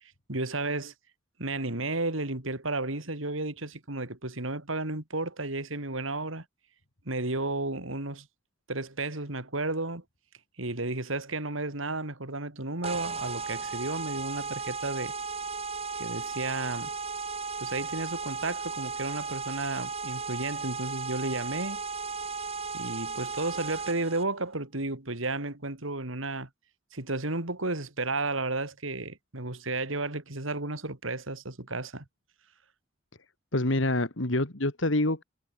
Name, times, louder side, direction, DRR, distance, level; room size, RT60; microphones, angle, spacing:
voice 1, 0.3-0.9 1.4-6.4 7.0-8.3 8.7-10.0 10.6-15.1 15.9-16.9 17.6-21.8 22.7-26.5 26.9-32.0, right 2 dB, 80° right, 3.5 m, -33 dB
sound 1, 12.8-24.2, right 4 dB, 30° right, 2.1 m, -35 dB
voice 2, 33.5-35.2, left 1 dB, 70° left, 2.5 m, -26 dB
head